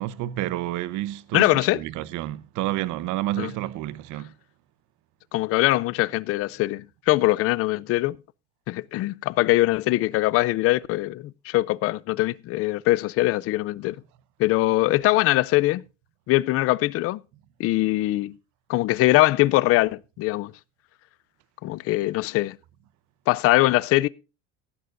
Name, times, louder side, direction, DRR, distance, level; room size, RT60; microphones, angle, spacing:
voice 1, 0.0-4.3, right 15 dB, 60° right, 0.9 m, -30 dB
voice 2, 1.3-1.8 3.4-3.5 5.3-8.2 8.7-14.0 14.4-15.8 16.3-17.2 17.6-18.3 18.7-20.5 21.6-22.6 23.3-24.1, left 18 dB, 45° left, 0.5 m, -22 dB
18.0 x 11.0 x 2.5 m
cardioid pair, 140°, 34 cm